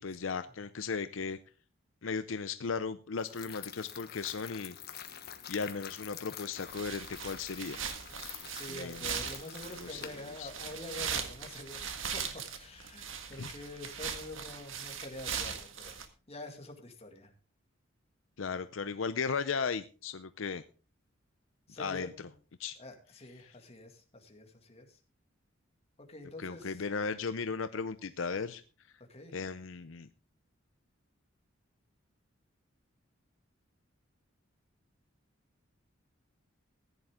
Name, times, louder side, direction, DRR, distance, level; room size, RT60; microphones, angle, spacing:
voice 1, 0.0-1.4 2.0-4.8 5.5-7.8 8.7-9.1 9.8-10.1 10.4-10.5 13.4-13.5 18.4-20.6 21.8-22.1 22.6-22.8 26.4-28.6 29.3-30.1, left 5 dB, 70° left, 11 dB, 0.6 m, -36 dB
sound 1, 3.2-11.1, left 9 dB, 50° left, 1.4 m, -48 dB
sound 2, 6.7-16.1, right 7 dB, 70° right, 1.8 m, -40 dB
voice 2, 8.4-16.0 16.3-17.3 21.7-22.3 22.8-25.0 26.0-26.8 29.1-29.4, left 2 dB, 30° left, 4 dB, 2.2 m, -47 dB
15.0 x 10.5 x 3.7 m, 0.35 s
head